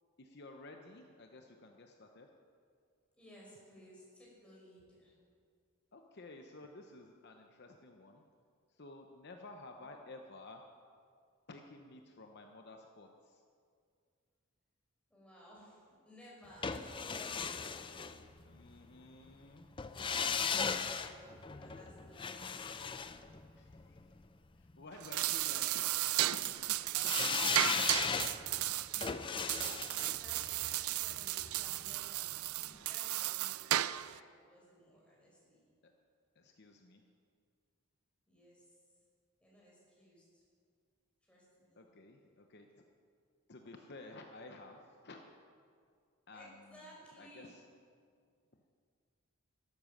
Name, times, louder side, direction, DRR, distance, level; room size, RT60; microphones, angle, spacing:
voice 1, 0.2-2.3 5.9-8.2 8.7-10.6 11.5-13.4 18.4-19.7 23.5-24.2 24.6-25.8 26.3-27.9 35.8-35.9 36.4-37.0 41.8-42.8 43.5-45.3 46.3-46.7 47.2-47.6, left 2 dB, 50° left, 3 dB, 0.8 m, -53 dB
voice 2, 3.2-5.1 9.8-9.9 15.1-17.6 20.6-22.6 25.4-25.6 30.0-33.6 34.1-35.7 38.3-38.8 39.4-40.4 41.2-41.8 46.3-47.5, equal, 5° left, -5 dB, 4.8 m, -58 dB
sound 1, 16.6-18.7 19.8-24.0 27.0-32.0 32.3-32.4, left 6 dB, 25° left, 0.4 m, -37 dB
sound 2, 24.9-34.2, right 15 dB, 85° right, 0.4 m, -35 dB
12.5 x 12.0 x 6.6 m, 2.2 s
head